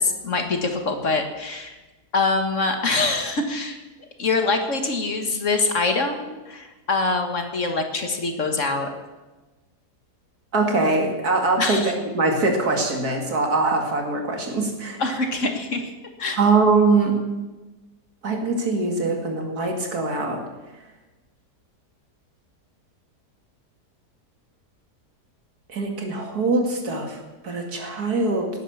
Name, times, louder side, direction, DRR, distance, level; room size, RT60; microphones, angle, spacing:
voice 1, 0.0-1.8 2.1-3.8 4.2-8.9 11.6-11.9 15.0-15.9 16.2-16.4, left 3 dB, 50° left, 5 dB, 1.8 m, -24 dB
voice 2, 10.5-15.0 16.4-17.2 18.2-20.4 25.7-28.5, right 3 dB, 65° right, 3 dB, 2.8 m, -22 dB
18.5 x 10.0 x 7.2 m, 1.2 s
omnidirectional pair, 1.8 m